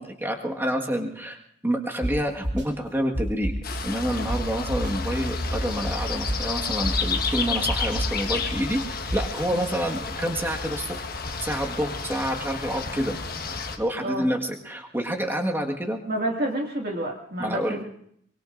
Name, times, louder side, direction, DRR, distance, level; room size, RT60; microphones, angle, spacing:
voice 1, 0.0-3.5 3.8-11.0 11.4-13.1 13.8-16.0 17.4-17.8, equal, 10° right, 1 dB, 1.6 m, -28 dB
sound 1, 2.0-2.1 2.4-2.6 3.1-3.8 4.3-4.4 4.7-4.9 5.4-6.4 6.8-7.2 7.7-8.3 9.1-9.4, right 1 dB, 65° right, 7.2 m, -28 dB
sound 2, 3.6-13.8, left 4 dB, 45° left, 1.5 m, -30 dB
voice 2, 16.1-17.8, right 1 dB, 50° right, 0 dB, 2.1 m, -29 dB
24.0 x 23.5 x 2.6 m, 0.67 s
head